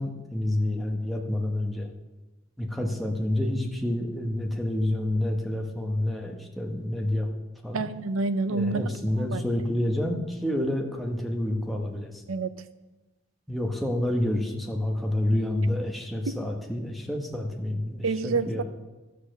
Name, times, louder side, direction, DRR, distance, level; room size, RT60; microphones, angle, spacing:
voice 1, 0.0-1.9 2.6-7.3 7.6-7.8 8.5-12.1 13.5-18.6, left 1 dB, ahead, 1 dB, 1.1 m, -28 dB
voice 2, 7.7-8.9 9.2-9.4 12.3-12.5 16.3-16.4 18.0-18.6, right 3 dB, 90° right, 13 dB, 0.6 m, -28 dB
12.5 x 6.8 x 6.4 m, 1.1 s
head